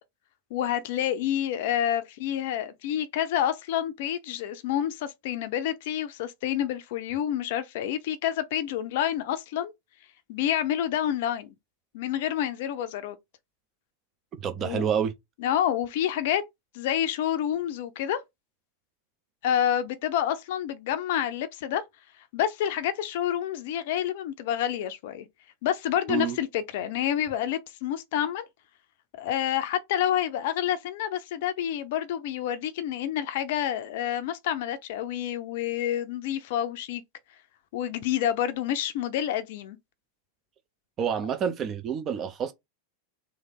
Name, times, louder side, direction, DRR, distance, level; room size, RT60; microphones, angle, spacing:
voice 1, 0.5-9.7 10.3-11.5 11.9-13.2 14.6-14.8 15.4-16.4 16.7-18.2 19.4-21.8 22.3-25.3 25.6-28.5 29.2-37.0 37.7-39.8, left 10 dB, 50° left, 0.6 m, -28 dB
voice 2, 14.4-15.1 26.1-26.4 41.0-42.5, right 7 dB, 30° right, 0.7 m, -28 dB
3.2 x 2.7 x 4.0 m
figure-of-eight pair, 90°, 0 cm